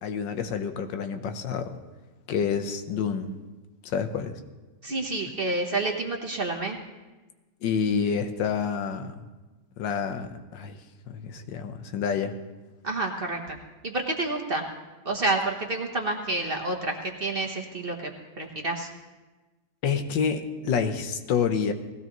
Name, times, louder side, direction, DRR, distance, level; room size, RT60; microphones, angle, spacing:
voice 1, 0.0-1.8 2.3-3.4 3.8-4.4 7.6-9.2 9.8-10.8 11.1-12.4 19.8-21.7, left 6 dB, 90° left, 8 dB, 1.6 m, -28 dB
voice 2, 4.8-6.8 12.8-13.6 13.8-14.6 15.0-18.1 18.4-18.9, right 2 dB, 35° right, 2 dB, 1.1 m, -29 dB
19.5 x 15.5 x 3.0 m, 1.2 s
omnidirectional pair, 1.9 m